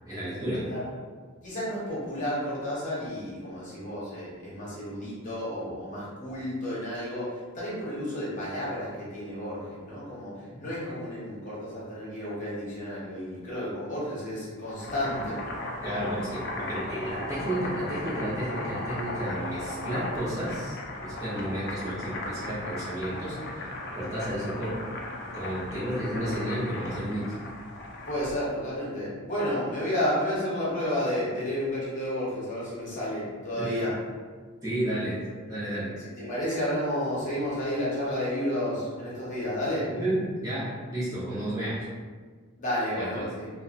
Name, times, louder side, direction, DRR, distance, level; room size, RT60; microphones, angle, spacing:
voice 1, 0.1-0.7 10.6-10.7 15.8-20.8 21.0-24.8 25.3-27.3 33.6-33.7 34.6-36.0 39.9-41.8 43.0-43.3, right 1 dB, 15° right, -11 dB, 0.7 m, -32 dB
voice 2, 1.4-10.3 10.6-15.4 28.1-33.9 36.0-39.9 42.6-43.5, equal, 35° left, -8 dB, 0.9 m, -31 dB
Boiling, 14.6-28.4, left 1 dB, 50° left, 0.4 m, -37 dB
2.7 x 2.1 x 2.4 m, 1.5 s
head